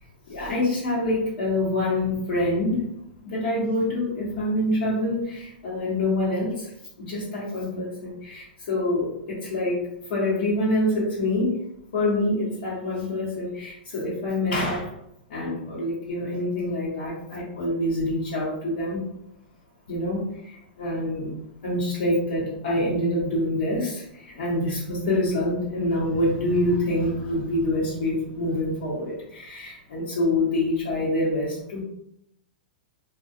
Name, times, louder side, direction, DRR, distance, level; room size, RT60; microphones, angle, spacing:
voice 1, 0.3-2.8 3.2-6.7 7.0-9.8 10.1-11.5 11.9-14.9 15.3-19.1 19.9-21.3 21.6-31.8, left 1 dB, 70° left, -8 dB, 0.9 m, -26 dB
2.3 x 2.2 x 2.6 m, 0.78 s
supercardioid pair, 155°, 5 cm